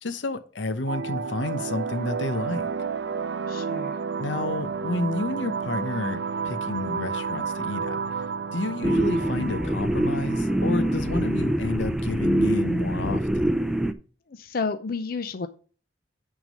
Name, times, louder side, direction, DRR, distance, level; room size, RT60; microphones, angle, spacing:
voice 1, 0.0-2.7 4.2-8.0 8.5-13.6, left 2 dB, 85° left, 0.9 m, -30 dB
sound 1, 0.9-11.9, right 5 dB, 75° right, 0.6 m, -32 dB
voice 2, 3.5-4.0 14.3-15.5, left 4 dB, 55° left, 0.6 m, -31 dB
sound 2, 8.8-13.9, right 1 dB, 5° right, 0.5 m, -25 dB
9.2 x 3.7 x 6.4 m
head